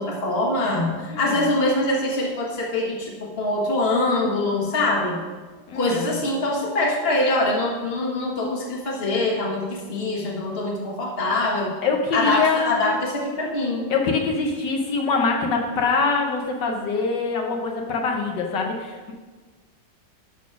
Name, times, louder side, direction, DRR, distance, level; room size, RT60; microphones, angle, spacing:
voice 1, 0.0-5.2 5.7-11.7 12.1-13.9, left 2 dB, 35° left, -1 dB, 1.6 m, -24 dB
voice 2, 1.1-1.4 5.7-6.2 11.8-13.0 13.9-19.1, left 4 dB, 75° left, 1 dB, 1.6 m, -24 dB
12.0 x 4.2 x 5.9 m, 1.4 s
omnidirectional pair, 1.9 m